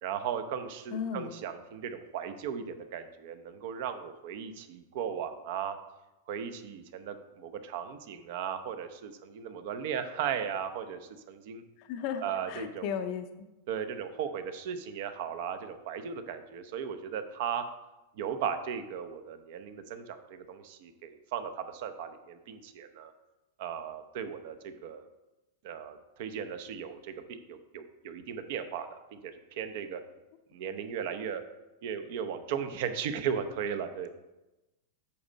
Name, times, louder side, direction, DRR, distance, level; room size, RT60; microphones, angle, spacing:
voice 1, 0.0-5.8 6.3-11.6 12.2-12.9 13.7-17.6 18.1-23.1 23.6-25.1 25.6-30.0 30.5-31.4 31.8-34.1, right 8 dB, 55° right, 9 dB, 0.7 m, -36 dB
voice 2, 0.9-1.3 11.8-12.2 12.5-13.2, left 8 dB, 45° left, 7 dB, 0.5 m, -34 dB
8.6 x 5.4 x 4.0 m, 1.0 s
supercardioid pair, 160°, 0 cm